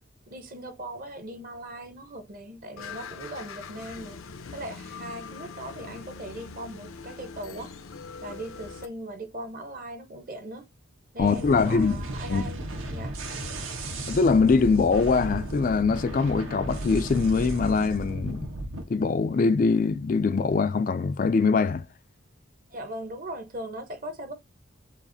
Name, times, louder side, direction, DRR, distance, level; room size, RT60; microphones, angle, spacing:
voice 1, 0.3-4.2 4.5-7.7 8.2-10.7 11.1-12.6 12.9-13.2 22.7-24.3, right 1 dB, 40° right, 0.9 m, -39 dB
sound 1, 2.8-8.9, left 5 dB, 80° left, 0.6 m, -42 dB
voice 2, 11.2-12.0 12.3-12.4 14.0-18.5 18.9-21.9, left 4 dB, 40° left, 0.3 m, -23 dB
sound 2, 11.2-18.8, right 1 dB, 75° right, 1.1 m, -34 dB
7.0 x 2.5 x 2.6 m
head